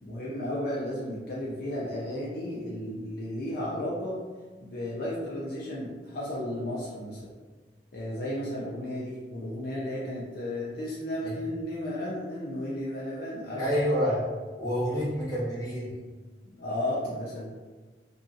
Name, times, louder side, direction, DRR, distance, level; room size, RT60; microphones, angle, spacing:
voice 1, 0.0-4.2 4.6-7.2 7.9-14.0 16.5-17.5, left 1 dB, 55° left, -6 dB, 0.5 m, -34 dB
voice 2, 13.6-14.3 14.6-16.0, equal, 20° left, -9 dB, 0.8 m, -28 dB
2.6 x 2.3 x 2.6 m, 1.3 s
head